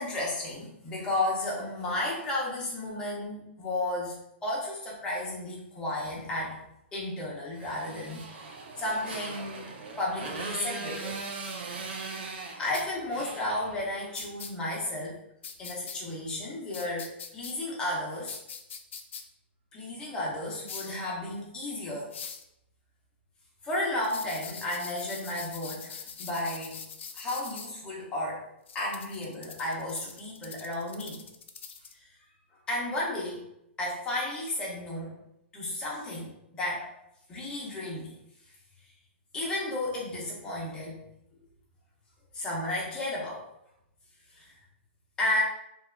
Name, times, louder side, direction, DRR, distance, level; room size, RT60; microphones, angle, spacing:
voice 1, 0.0-4.1 4.4-6.6 6.9-8.4 8.8-9.7 10.0-11.2 11.7-11.9 12.6-15.2 15.6-17.1 17.3-18.4 19.7-22.1 23.6-26.8 27.1-28.4 28.7-31.2 32.7-33.4 33.8-35.1 35.5-37.0 37.3-38.2 39.3-41.0 42.3-43.4 44.3-44.5 45.2-45.4, left 1 dB, 10° left, -4 dB, 0.6 m, -33 dB
Motorcycle, 7.6-14.3, right 3 dB, 60° right, 0.5 m, -40 dB
sound 1, 12.7-12.8 14.1-14.5 15.4-16.0 16.7-17.5 18.3-19.2 20.7-21.0 22.1-22.4 24.0-27.7 28.7-31.9, left 6 dB, 90° left, 0.4 m, -42 dB
2.8 x 2.3 x 2.2 m, 0.81 s
hypercardioid pair, 160°, 6 cm